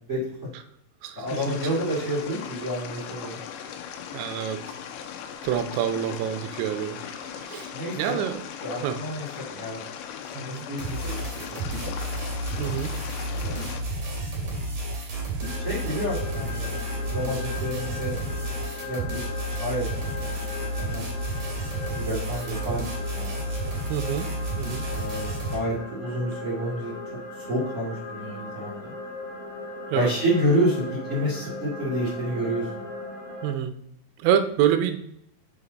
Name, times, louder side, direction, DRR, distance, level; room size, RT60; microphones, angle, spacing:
voice 1, 0.1-0.5 1.1-3.4 7.7-8.2 8.6-9.8 10.2-11.9 13.3-13.7 15.6-16.7 17.1-18.1 18.8-19.3 19.6-21.0 21.8-23.4 24.9-26.9 27.3-28.9 29.9-32.8, equal, 30° right, -7 dB, 1.3 m, -29 dB
voice 2, 1.0-1.6 4.1-4.8 5.4-7.7 8.0-8.4 8.8-9.0 10.4-11.0 12.6-12.9 23.9-24.3 24.6-24.9 29.9-30.1 33.4-33.8 34.2-35.0, right 10 dB, 80° right, 9 dB, 2.7 m, -27 dB
sound 1, 1.3-13.8, left 8 dB, 80° left, 2.5 m, -38 dB
sound 2, 10.8-25.6, right 1 dB, 50° right, 2.3 m, -31 dB
sound 3, 15.4-33.5, left 2 dB, 50° left, 1.9 m, -38 dB
6.6 x 5.5 x 4.0 m, 0.72 s
omnidirectional pair, 5.8 m